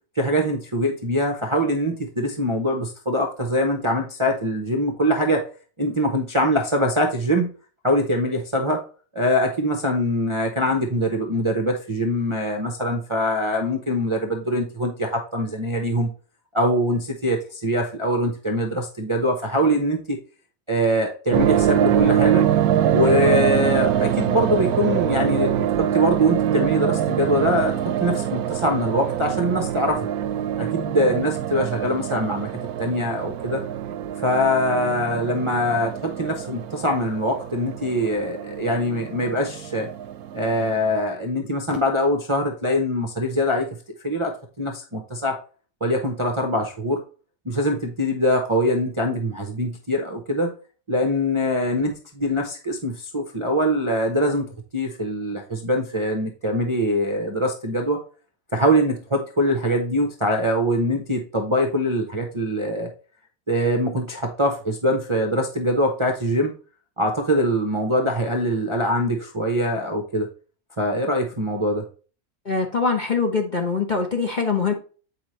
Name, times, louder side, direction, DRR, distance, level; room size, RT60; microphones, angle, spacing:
voice 1, 0.2-5.5 5.8-7.5 7.8-8.8 9.1-16.1 16.5-20.2 20.7-22.5 22.9-30.1 30.6-32.5 32.8-33.6 34.2-39.9 40.3-43.8 44.0-45.4 45.8-47.0 47.4-50.5 50.9-54.5 54.7-58.0 58.5-62.9 63.5-66.5 67.0-70.3 70.8-71.8, equal, 25° right, 0 dB, 0.7 m, -23 dB
sound 1, 21.3-41.0, right 10 dB, 80° right, 1.1 m, -24 dB
voice 2, 72.4-74.7, left 4 dB, 35° left, 2 dB, 0.9 m, -23 dB
8.3 x 5.0 x 3.1 m, 0.38 s
omnidirectional pair, 1.6 m